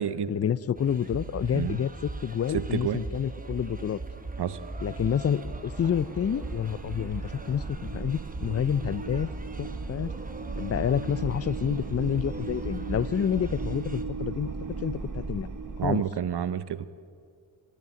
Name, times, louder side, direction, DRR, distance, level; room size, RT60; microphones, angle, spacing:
voice 1, 0.3-4.0 4.8-9.3 9.6-10.1 10.6-14.5 14.8-15.5 15.8-16.0, left 8 dB, 35° left, 20 dB, 0.4 m, -28 dB
sound 1, 0.8-14.0, right 2 dB, 20° right, 1.2 m, -39 dB
voice 2, 2.5-3.0 4.4-4.6 15.8-16.9, right 9 dB, 60° right, 15 dB, 0.8 m, -29 dB
sound 2, 4.2-15.9, right 4 dB, 45° right, 1.3 m, -37 dB
12.5 x 12.5 x 9.2 m, 2.2 s
cardioid pair, 60°, 44 cm